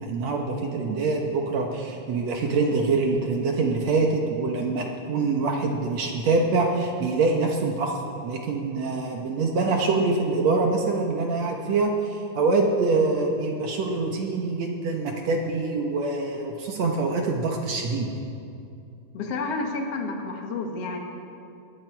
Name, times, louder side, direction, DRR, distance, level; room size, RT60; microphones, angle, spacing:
voice 1, 0.0-18.1, right 3 dB, 65° right, 1 dB, 1.8 m, -25 dB
voice 2, 19.1-21.0, left 3 dB, 50° left, 3 dB, 2.0 m, -30 dB
21.0 x 14.5 x 4.6 m, 2.6 s
omnidirectional pair, 4.5 m